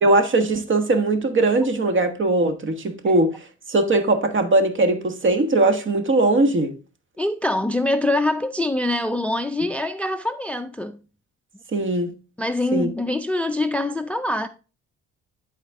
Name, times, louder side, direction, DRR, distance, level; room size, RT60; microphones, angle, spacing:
voice 1, 0.0-6.7 11.7-12.1 12.7-12.9, right 2 dB, 40° right, 1.3 m, -20 dB
voice 2, 7.2-11.0 12.4-14.5, left 1 dB, 5° left, 0.4 m, -24 dB
11.0 x 4.3 x 3.5 m
cardioid pair, 90°, 30 cm